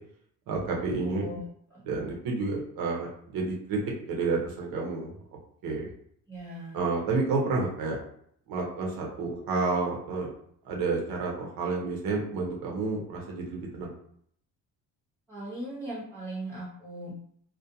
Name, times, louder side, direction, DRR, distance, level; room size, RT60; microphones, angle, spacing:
voice 1, 0.5-1.2 1.8-3.8 4.1-5.1 5.6-5.9 6.7-8.0 8.5-10.3 10.6-13.9, right 3 dB, 75° right, -1 dB, 0.8 m, -30 dB
voice 2, 1.0-1.4 1.7-1.8 6.3-6.8 15.3-17.1, right 1 dB, 5° left, -8 dB, 1.1 m, -39 dB
2.4 x 2.1 x 2.7 m, 0.66 s
cardioid pair, 170°, 35 cm